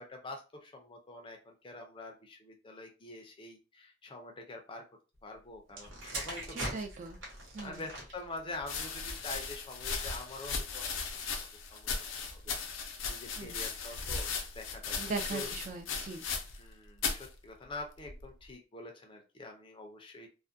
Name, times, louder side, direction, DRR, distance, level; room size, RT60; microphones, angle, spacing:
voice 1, 0.0-4.8 5.2-6.8 7.6-11.0 11.7-12.6 13.1-14.3 14.5-15.5 16.6-20.3, left 2 dB, 25° left, 2 dB, 0.4 m, -46 dB
sound 1, 5.7-9.5 10.3-10.6, right 1 dB, 75° right, 1.0 m, -42 dB
voice 2, 6.5-7.2 7.5-7.8 13.4-13.5 15.0-16.2, right 4 dB, 40° right, 4 dB, 0.3 m, -39 dB
sound 2, 8.6-16.7 17.0-17.3 18.0-18.5, left 5 dB, 80° left, 0.5 m, -37 dB
2.3 x 2.1 x 2.5 m, 0.32 s
head